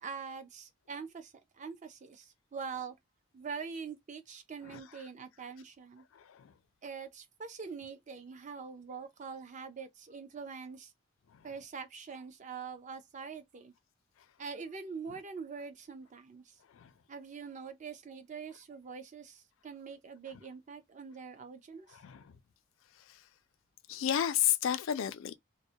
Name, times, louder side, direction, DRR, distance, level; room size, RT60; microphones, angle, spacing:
voice 1, 0.0-2.9 3.3-6.0 6.8-10.9 11.4-13.7 14.4-16.4 17.1-22.0, right 5 dB, 35° right, 0.4 m, -44 dB
voice 2, 4.6-5.0 6.1-6.5 11.3-11.5 15.1-15.2 16.7-16.9 21.9-22.4 23.1-23.2 23.9-25.4, left 10 dB, 70° left, 0.4 m, -33 dB
2.2 x 2.0 x 2.7 m
head